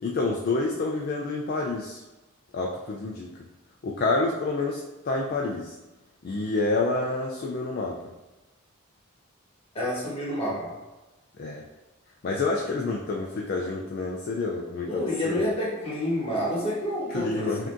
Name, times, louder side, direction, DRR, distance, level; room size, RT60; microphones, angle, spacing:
voice 1, 0.0-2.0 2.5-3.3 3.8-5.7 6.2-8.0 11.4-11.6 12.2-15.4 17.1-17.7, left 3 dB, 45° left, 0 dB, 0.4 m, -28 dB
voice 2, 9.7-10.7 12.7-12.8 14.8-17.7, left 1 dB, 25° left, -6 dB, 1.3 m, -29 dB
5.8 x 2.7 x 2.5 m, 1.1 s
head